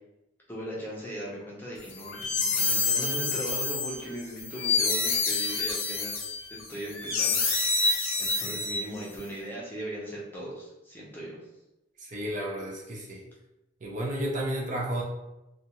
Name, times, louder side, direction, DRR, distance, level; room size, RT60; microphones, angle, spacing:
voice 1, 0.5-7.8 8.2-11.4, right 1 dB, 10° left, -6 dB, 0.6 m, -39 dB
sound 1, 1.9-9.2, left 3 dB, 90° left, 0.6 m, -28 dB
voice 2, 8.4-8.9 12.0-13.2 13.8-15.0, right 1 dB, 40° right, -3 dB, 0.5 m, -33 dB
2.4 x 2.3 x 2.8 m, 0.93 s
head